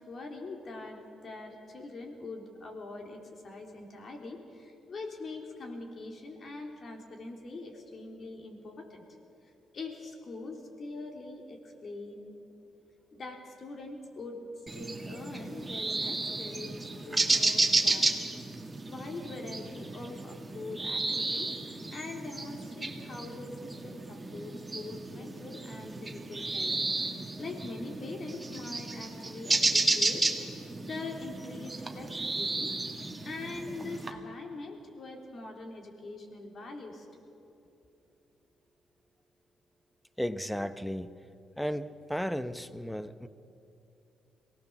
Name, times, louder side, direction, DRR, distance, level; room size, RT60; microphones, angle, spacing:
voice 1, 0.1-9.0 9.7-12.3 13.1-16.7 17.0-18.1 18.9-26.8 27.1-30.3 30.8-32.7 33.2-37.2, left 3 dB, 45° left, 2 dB, 3.6 m, -43 dB
sound 1, 14.7-34.1, right 2 dB, 15° right, 1.9 m, -32 dB
voice 2, 40.2-41.1 41.6-43.3, equal, ahead, 13 dB, 0.9 m, -34 dB
23.0 x 18.0 x 7.0 m, 2.8 s
cardioid pair, 90°, 0 cm